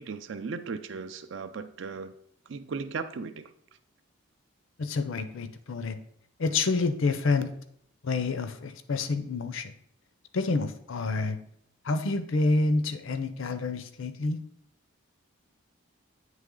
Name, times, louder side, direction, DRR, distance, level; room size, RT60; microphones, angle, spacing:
voice 1, 0.0-2.1 2.5-3.5, right 5 dB, 60° right, 11 dB, 0.4 m, -36 dB
voice 2, 4.8-6.0 6.4-7.5 8.0-9.7 10.3-11.4 11.8-14.4, left 3 dB, 65° left, 10 dB, 0.5 m, -28 dB
9.1 x 3.2 x 3.7 m, 0.68 s
head